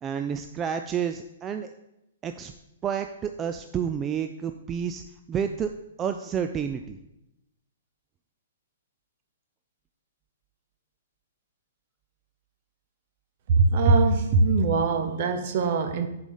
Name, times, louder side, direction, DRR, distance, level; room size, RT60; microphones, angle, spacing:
voice 1, 0.0-1.7 2.2-2.5 2.8-5.0 5.3-5.7 6.0-7.0, right 8 dB, 20° right, 7 dB, 0.3 m, -30 dB
voice 2, 13.5-16.1, right 3 dB, 45° right, 7 dB, 0.9 m, -21 dB
7.0 x 4.9 x 5.5 m, 0.89 s
hypercardioid pair, 150°, 0 cm